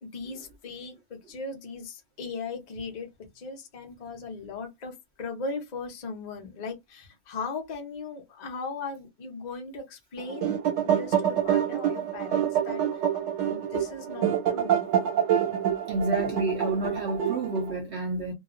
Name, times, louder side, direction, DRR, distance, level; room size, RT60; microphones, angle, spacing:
voice 1, 0.0-3.1 3.3-12.8 13.5-14.8, left 4 dB, 70° left, 0.4 m, -38 dB
sound 1, 10.2-17.8, right 9 dB, 90° right, 1.4 m, -26 dB
voice 2, 15.4-18.3, right 2 dB, 65° right, 0.6 m, -30 dB
2.7 x 2.3 x 2.4 m
omnidirectional pair, 1.8 m